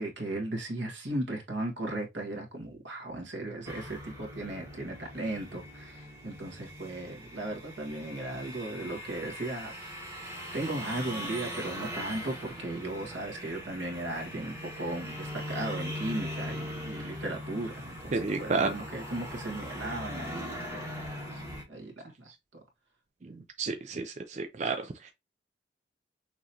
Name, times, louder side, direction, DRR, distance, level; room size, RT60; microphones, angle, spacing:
voice 1, 0.0-9.9 10.2-21.0 21.3-22.3, right 1 dB, 80° right, 1.7 m, -36 dB
sound 1, 3.6-21.6, equal, 15° right, 1.6 m, -41 dB
voice 2, 18.1-18.7 23.6-24.8, right 4 dB, 40° right, 0.4 m, -30 dB
6.1 x 3.0 x 2.7 m
head